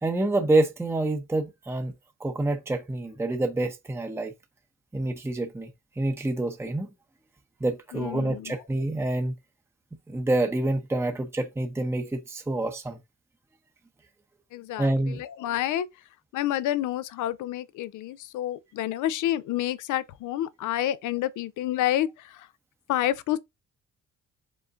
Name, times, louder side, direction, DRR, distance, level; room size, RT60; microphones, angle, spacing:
voice 1, 0.0-1.9 2.2-4.3 4.9-5.7 6.0-6.9 7.6-9.3 10.1-13.0 14.8-15.2, right 2 dB, 10° right, 0.7 m, -27 dB
voice 2, 7.9-8.6 14.5-15.9 16.3-22.5 22.9-23.4, left 13 dB, 80° left, 0.6 m, -29 dB
5.3 x 3.6 x 2.5 m
cardioid pair, 90°, 30 cm